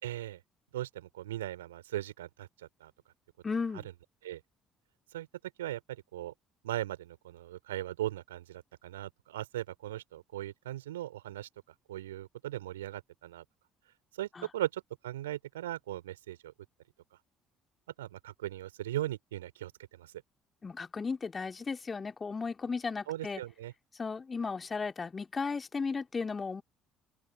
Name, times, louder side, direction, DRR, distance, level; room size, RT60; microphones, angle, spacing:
voice 1, 0.0-0.4 0.7-2.5 2.8-2.9 4.2-4.4 5.1-5.3 5.6-6.3 6.6-11.5 11.9-13.4 14.2-16.5 18.0-20.1 23.1-23.7, right 14 dB, 75° right, 4.3 m, -38 dB
voice 2, 3.4-3.9 14.4-14.5 20.6-23.4 24.0-26.6, left 4 dB, 30° left, 2.3 m, -35 dB
open air
figure-of-eight pair, 50°, 0 cm